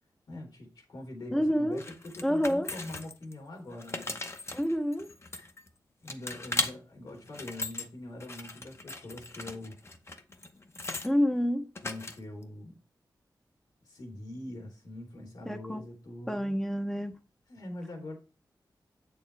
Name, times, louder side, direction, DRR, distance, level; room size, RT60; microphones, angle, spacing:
voice 1, 0.3-4.2 6.0-9.7 11.8-12.8 13.8-16.6 17.5-18.2, left 1 dB, 65° left, 2.8 m, -43 dB
voice 2, 1.3-1.8 2.2-2.7 4.5-5.1 11.0-11.7 15.5-15.9 16.3-17.1, equal, 5° left, 0.7 m, -28 dB
sound 1, 1.8-3.3 3.7-5.7 6.1-6.7 7.2-7.9 8.2-11.1 11.8-12.4, left 2 dB, 35° left, 0.9 m, -38 dB
8.3 x 6.7 x 3.2 m
wide cardioid pair, 120°, 8 cm